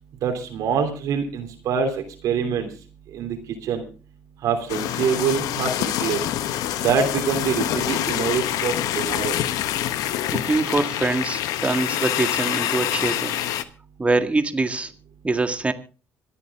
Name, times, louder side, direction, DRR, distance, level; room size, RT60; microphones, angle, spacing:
voice 1, 0.2-1.9 2.2-2.7 3.1-3.4 3.6-3.8 4.4-5.7 6.0-6.2 6.8-9.3, right 6 dB, 75° right, 4 dB, 3.0 m, -24 dB
sound 1, 4.7-13.6, left 12 dB, 80° left, 1.0 m, -26 dB
voice 2, 10.3-13.4 14.0-14.9 15.2-15.7, right 3 dB, 20° right, 8 dB, 1.9 m, -24 dB
26.0 x 9.0 x 3.6 m, 0.35 s
supercardioid pair, 75°, 6 cm